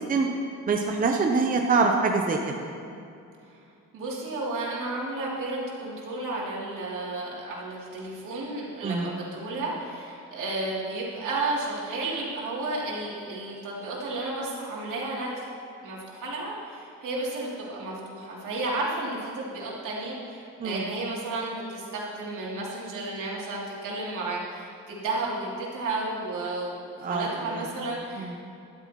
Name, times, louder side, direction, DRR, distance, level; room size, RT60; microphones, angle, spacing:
voice 1, 0.7-2.4 8.8-9.1 20.6-20.8 27.0-27.7 28.2-28.3, right 4 dB, 25° right, 2 dB, 0.7 m, -24 dB
voice 2, 3.9-15.5 15.8-28.4, right 2 dB, 75° right, -5 dB, 3.1 m, -32 dB
13.5 x 12.0 x 3.1 m, 2.5 s
cardioid pair, 150°, 31 cm